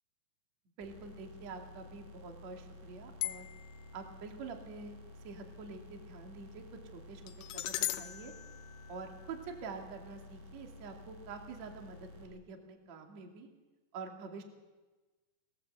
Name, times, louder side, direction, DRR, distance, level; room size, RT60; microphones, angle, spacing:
voice 1, 0.8-3.5 3.9-6.6 6.9-8.3 8.9-13.5 13.9-14.4, right 4 dB, 45° right, 3 dB, 2.9 m, -47 dB
sound 1, 0.8-12.2, left 1 dB, 80° right, 8.3 m, -53 dB
sound 2, 3.2-3.9 7.3-9.5, left 15 dB, 75° left, 2.6 m, -39 dB
28.0 x 18.0 x 8.0 m, 1.2 s
omnidirectional pair, 5.8 m